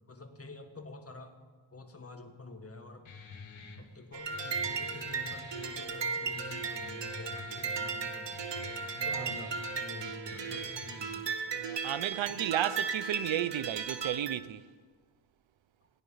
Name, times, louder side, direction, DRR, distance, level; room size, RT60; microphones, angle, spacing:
voice 1, 0.1-1.3 1.7-3.0 3.8-8.5 9.0-11.3 12.1-12.3, left 2 dB, 30° left, 1.8 m, -48 dB
Guitar, 3.0-11.0, left 5 dB, 85° left, 1.6 m, -49 dB
sound 1, 4.1-14.4, right 5 dB, 65° right, 1.0 m, -36 dB
voice 2, 9.0-9.3 11.6-14.6, right 11 dB, 80° right, 0.6 m, -33 dB
17.5 x 10.5 x 5.6 m
cardioid pair, 75°, 45 cm